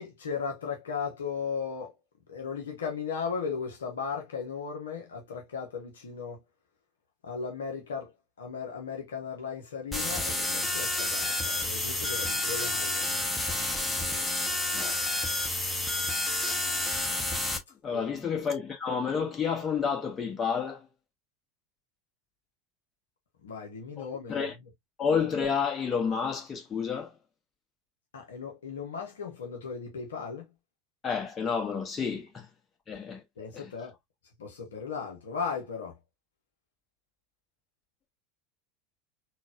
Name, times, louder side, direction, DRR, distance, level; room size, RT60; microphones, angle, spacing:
voice 1, 0.0-1.9 2.3-6.4 7.2-8.1 8.4-13.2 17.9-18.1 23.4-24.5 28.1-30.4 33.4-33.9 34.4-35.9, left 6 dB, 70° left, 0.8 m, -36 dB
sound 1, 9.9-17.6, left 2 dB, 10° left, 0.9 m, -30 dB
voice 2, 17.8-20.8 24.3-24.5 25.0-27.1 31.0-32.5 32.9-33.7, left 6 dB, 25° left, 1.3 m, -30 dB
4.0 x 2.3 x 2.3 m
figure-of-eight pair, 80°, 0 cm